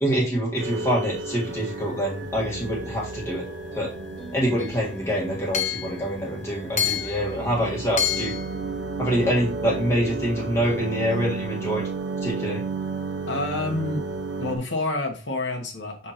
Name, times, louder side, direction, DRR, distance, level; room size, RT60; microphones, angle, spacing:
voice 1, 0.0-3.4 3.7-3.9 4.3-8.3 9.0-11.8 12.2-12.6, equal, 15° left, -4 dB, 1.6 m, -25 dB
sound 1, 0.6-14.6, right 3 dB, 70° right, 1.1 m, -33 dB
sound 2, 2.2-11.3, right 2 dB, 30° right, 3.4 m, -42 dB
Hammer / Chink clink, 4.6-4.7 5.5-5.9 6.8-7.2 8.0-8.5, left 9 dB, 35° left, 0.7 m, -26 dB
voice 2, 13.3-14.0 14.4-16.1, left 2 dB, 70° left, 2 dB, 1.3 m, -28 dB
9.9 x 3.6 x 2.9 m, 0.35 s
head